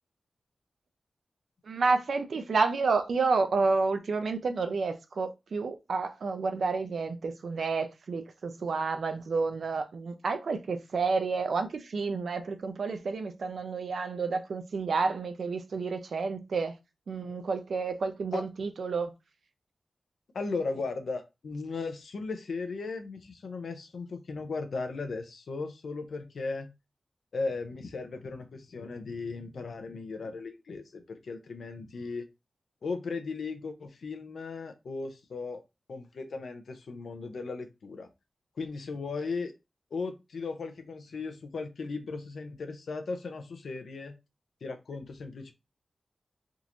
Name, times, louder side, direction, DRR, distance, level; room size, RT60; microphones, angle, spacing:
voice 1, 1.6-16.7 17.1-19.1, right 4 dB, 80° right, 0.6 m, -30 dB
voice 2, 20.3-26.7 27.3-32.3 32.8-35.6 35.9-38.1 38.6-39.5 39.9-44.1 44.6-45.5, left 4 dB, 85° left, 0.7 m, -36 dB
3.7 x 2.6 x 2.9 m
wide cardioid pair, 105°, 0 cm